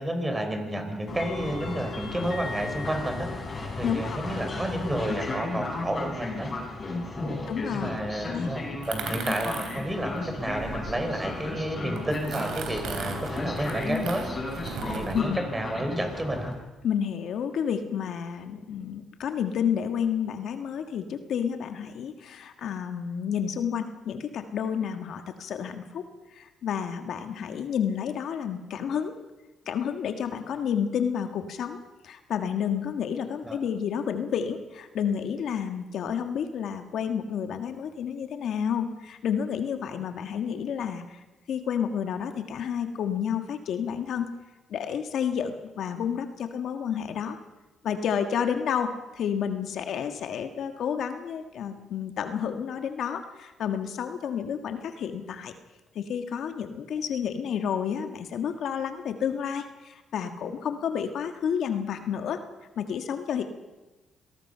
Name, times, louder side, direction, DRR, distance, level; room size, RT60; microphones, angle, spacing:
voice 1, 0.0-3.3 3.8-6.5 7.2-7.4 7.7-14.3 14.8-16.5 33.4-33.6, right 1 dB, 15° right, 5 dB, 4.9 m, -31 dB
Train, 1.1-16.5, left 3 dB, 35° left, 6.8 m, -35 dB
voice 2, 3.8-4.3 7.5-7.9 8.3-8.5 14.8-15.4 16.8-26.1 26.3-29.2 29.6-41.2 41.5-44.3 44.7-47.4 47.8-55.5 55.9-62.4 62.8-63.4, left 8 dB, 70° left, 7 dB, 1.6 m, -30 dB
sound 1, 8.8-11.5 12.0-15.2, right 6 dB, 80° right, 3.7 m, -38 dB
26.0 x 18.5 x 5.6 m, 1.1 s
cardioid pair, 90°, 0 cm